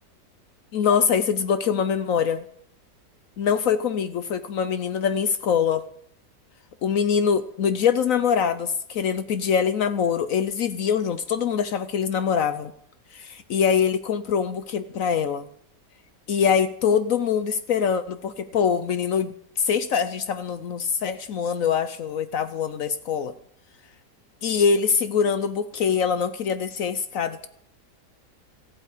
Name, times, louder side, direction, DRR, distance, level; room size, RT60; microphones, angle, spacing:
voice 1, 0.7-2.5 3.4-5.8 6.8-12.7 13.1-15.5 16.3-23.3 24.4-27.5, left 7 dB, 65° left, 12 dB, 0.9 m, -24 dB
14.5 x 8.2 x 8.2 m, 0.70 s
omnidirectional pair, 1.8 m